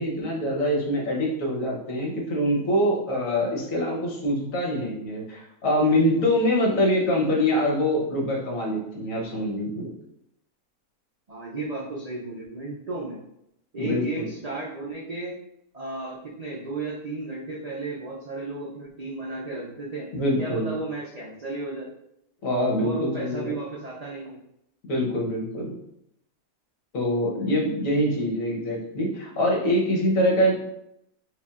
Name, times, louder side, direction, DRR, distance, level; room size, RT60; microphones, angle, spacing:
voice 1, 0.0-9.9 13.8-14.3 20.1-20.7 22.4-23.5 24.8-25.7 26.9-30.6, equal, 65° left, -2 dB, 1.3 m, -24 dB
voice 2, 11.3-13.2 13.7-15.3 15.7-20.1 20.4-21.9 22.8-24.4 27.3-27.5, right 2 dB, 75° right, -5 dB, 0.3 m, -34 dB
4.9 x 2.5 x 2.4 m, 0.79 s
omnidirectional pair, 1.6 m